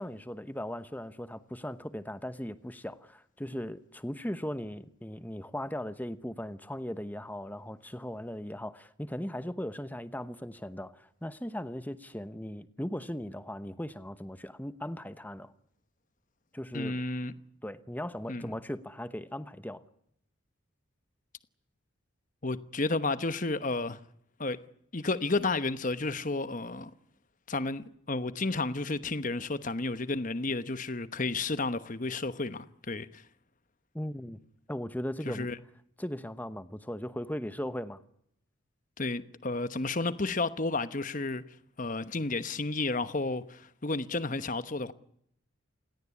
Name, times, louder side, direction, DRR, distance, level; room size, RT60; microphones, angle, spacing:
voice 1, 0.0-15.5 16.5-17.0 17.6-19.8 33.9-34.4 34.7-35.5 36.0-38.0, equal, 10° left, 1.0 m, -38 dB
voice 2, 16.7-17.3 18.3-18.6 22.4-24.0 24.4-24.6 24.9-26.9 27.5-33.2 35.2-35.6 39.0-41.4 41.8-44.9, left 3 dB, 40° left, 1.1 m, -32 dB
29.0 x 17.5 x 9.7 m
head